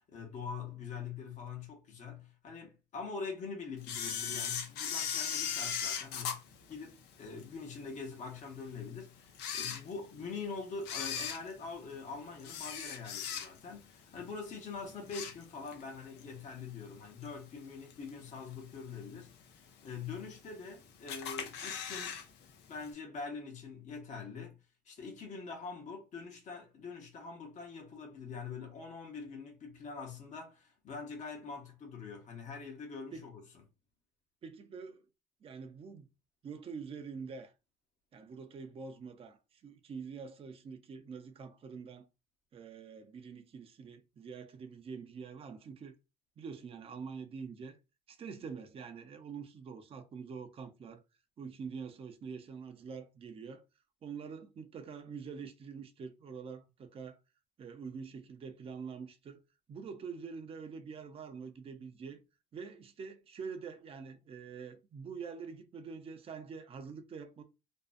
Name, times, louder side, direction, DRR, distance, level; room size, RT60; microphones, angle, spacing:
voice 1, 0.1-6.4 6.7-22.2 22.7-24.6 24.9-33.4, left 5 dB, 45° left, 0.8 m, -44 dB
Camera, 3.8-7.4 7.9-8.0 8.7-8.8 9.3-10.3 10.8-13.8 14.2-14.4 14.8-15.8 16.2-16.3 17.2-17.3 17.9-18.3 18.7-18.8 19.0-19.1 19.3-19.4 20.1-20.7 21.1-22.2 22.5-22.6 22.9-23.0, left 8 dB, 85° left, 0.6 m, -38 dB
voice 2, 34.4-35.0 35.4-36.1 36.4-37.5 38.1-42.1 42.5-45.9 46.4-47.8 48.1-51.0 51.4-53.6 54.0-57.2 57.6-59.4 59.7-62.2 62.5-67.4, right 5 dB, 35° right, 0.5 m, -45 dB
2.5 x 2.1 x 2.4 m
cardioid pair, 110°, 17 cm